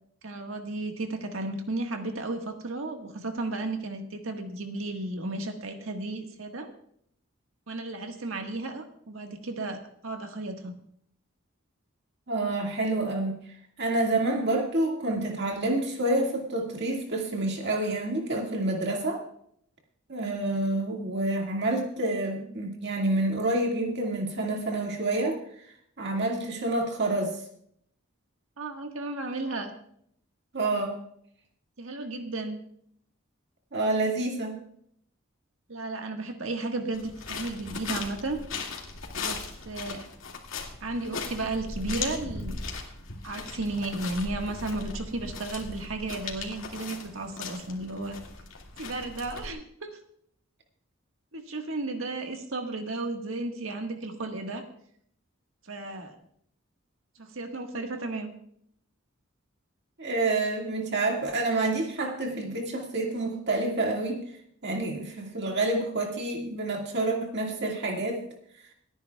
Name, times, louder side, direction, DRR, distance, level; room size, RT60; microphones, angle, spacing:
voice 1, 0.2-6.7 7.7-10.8 28.6-29.7 31.8-32.6 35.7-38.4 39.2-39.4 39.7-40.1 40.8-42.6 43.2-48.2 48.8-50.0 51.3-54.6 55.6-56.2 57.2-58.3, right 2 dB, 85° right, 4 dB, 1.6 m, -34 dB
voice 2, 12.3-13.3 13.8-19.2 20.1-25.4 26.0-27.4 30.5-31.0 33.7-34.5 60.0-64.2 64.6-68.2, right 2 dB, 60° right, 0 dB, 2.0 m, -28 dB
sound 1, 36.9-49.5, left 4 dB, 75° left, 2.2 m, -38 dB
28.0 x 9.8 x 2.3 m, 0.69 s
head